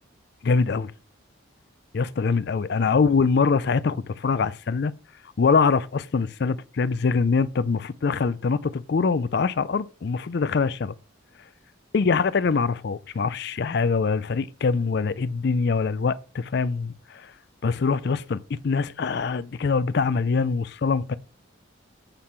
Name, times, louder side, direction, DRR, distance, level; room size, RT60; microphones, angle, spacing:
voice 1, 0.4-0.9 1.9-4.9 5.4-10.9 11.9-17.3 17.6-21.2, left 5 dB, 55° left, 0.4 m, -24 dB
8.6 x 3.7 x 5.8 m
head